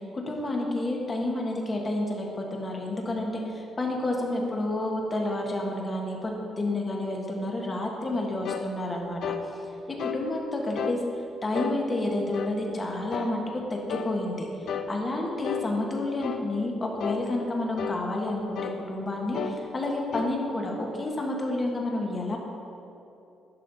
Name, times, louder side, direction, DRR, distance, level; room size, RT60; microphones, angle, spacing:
voice 1, 0.0-9.3 10.0-11.0 11.4-14.5 14.9-22.4, left 2 dB, 30° left, 0 dB, 1.6 m, -30 dB
sound 1, 8.4-8.7 9.2-9.5 10.0-10.2 10.8-11.0 11.5-11.8 12.3-12.6 13.1-13.4 13.9-14.1 14.7-14.9 15.4-15.7 16.2-16.5 17.0-17.2 17.8-18.0 18.6-18.8 19.3-19.6 20.1-20.4, left 7 dB, 70° left, 0.5 m, -32 dB
10.5 x 6.7 x 4.1 m, 2.9 s
cardioid pair, 90°, 0 cm